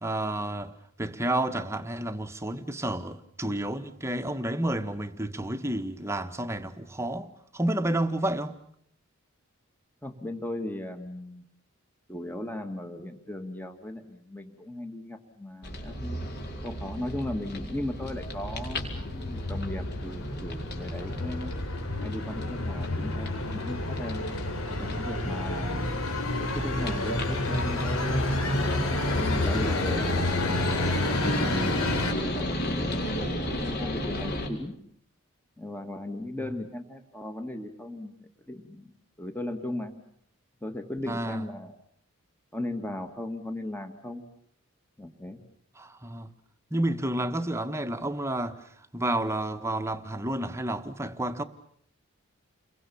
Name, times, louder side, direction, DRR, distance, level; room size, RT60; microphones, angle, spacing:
voice 1, 0.0-8.6 31.3-31.8 36.4-36.5 41.1-41.5 45.7-46.3 46.7-51.4, right 1 dB, 10° right, 1.4 m, -31 dB
voice 2, 10.0-11.4 12.1-16.2 16.6-21.5 22.0-24.3 24.8-26.0 26.4-28.5 29.1-30.1 31.0-33.0 33.5-34.8 35.6-38.1 38.5-38.9 39.2-39.9 40.6-41.7 42.5-44.2 45.0-45.4, left 1 dB, 10° left, 1.8 m, -37 dB
sound 1, 15.6-34.5, left 1 dB, 50° left, 4.7 m, -34 dB
sound 2, 18.0-32.1, left 2 dB, 75° left, 3.9 m, -30 dB
29.5 x 23.0 x 7.0 m
head